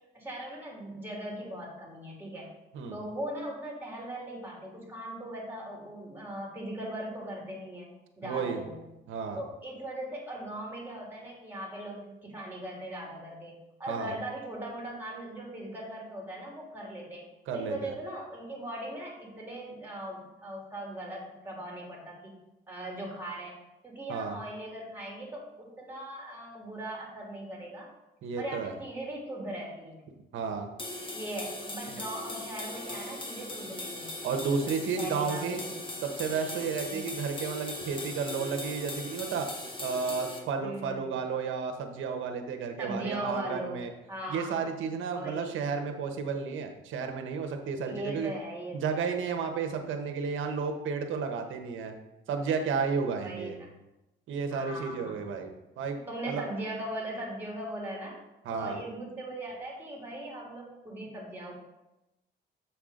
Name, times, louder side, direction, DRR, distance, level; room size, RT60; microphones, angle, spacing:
voice 1, 0.1-2.5 2.9-7.9 8.2-8.8 9.3-17.2 17.5-22.3 22.7-23.6 23.8-27.9 28.4-30.0 31.1-34.4 35.0-35.8 36.9-37.0 40.6-41.1 42.8-43.8 44.1-44.6 45.1-45.5 47.8-49.0 53.1-53.7 54.5-55.3 56.1-58.2 58.5-61.6, right 1 dB, 10° right, -3 dB, 3.0 m, -39 dB
voice 2, 8.2-8.6 9.1-9.4 13.9-14.1 17.5-17.9 24.1-24.4 28.2-28.7 30.3-30.7 34.2-35.6 36.1-39.5 39.8-43.9 44.3-48.3 48.7-51.9 52.3-53.6 54.3-55.5 55.8-56.0 56.2-56.4 58.4-58.8, right 5 dB, 80° right, 4 dB, 1.1 m, -32 dB
sound 1, 30.8-40.4, left 2 dB, 25° left, 1.4 m, -39 dB
7.7 x 5.8 x 3.8 m, 0.94 s
cardioid pair, 90°, 20 cm